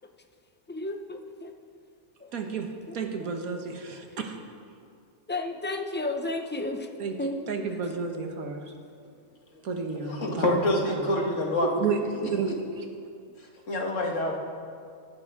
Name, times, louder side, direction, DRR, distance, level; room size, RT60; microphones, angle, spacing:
voice 1, 0.7-1.5 2.2-2.3 3.0-3.1 5.3-6.9 7.2-7.4, left 2 dB, 10° left, 5 dB, 0.5 m, -32 dB
voice 2, 2.3-2.7 2.9-4.3 7.0-7.2 7.5-8.7 9.6-10.5 10.9-11.1 11.6-12.5 12.8-12.9, right 5 dB, 80° right, 4 dB, 1.7 m, -31 dB
voice 3, 10.1-11.7 12.2-12.3 13.7-14.3, left 1 dB, 60° left, -1 dB, 2.2 m, -26 dB
24.0 x 9.9 x 3.7 m, 2.3 s
omnidirectional pair, 1.5 m